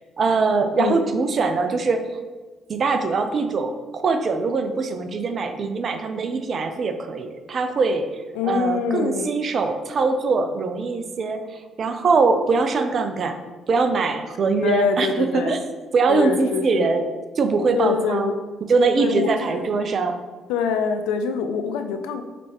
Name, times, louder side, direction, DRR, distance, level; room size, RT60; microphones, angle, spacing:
voice 1, 0.2-2.1 2.7-13.4 13.7-15.6 15.9-17.1 17.4-18.3 18.7-20.2, right 4 dB, 50° right, 7 dB, 0.5 m, -22 dB
voice 2, 8.3-9.3 14.6-15.6 16.1-16.9 17.8-18.3 19.0-19.6 20.5-22.2, left 6 dB, 75° left, 7 dB, 0.4 m, -24 dB
5.0 x 3.4 x 2.9 m, 1.3 s
hypercardioid pair, 50°, 0 cm